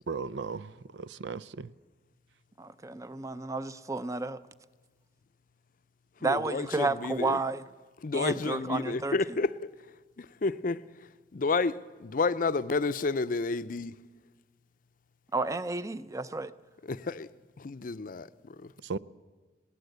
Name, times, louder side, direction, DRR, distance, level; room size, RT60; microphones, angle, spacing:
voice 1, 0.1-1.7 18.8-19.0, right 4 dB, 90° right, 0.5 m, -36 dB
voice 2, 2.6-4.4 6.2-7.7 8.1-9.4 15.3-16.5, right 3 dB, 20° right, 0.6 m, -32 dB
voice 3, 6.3-7.4 8.0-9.5 10.2-10.8 11.3-13.9 16.9-17.3 17.6-18.3, left 3 dB, 50° left, 0.5 m, -30 dB
20.0 x 18.0 x 8.0 m
head